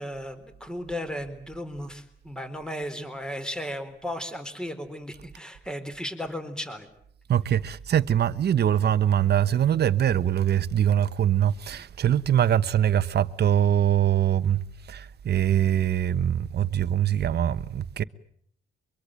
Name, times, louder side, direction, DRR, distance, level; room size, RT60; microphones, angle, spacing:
voice 1, 0.0-6.9, equal, 5° left, 4.1 m, -35 dB
voice 2, 7.3-18.0, right 10 dB, 55° right, 1.2 m, -23 dB
24.5 x 23.5 x 9.1 m
cardioid pair, 90°, 20 cm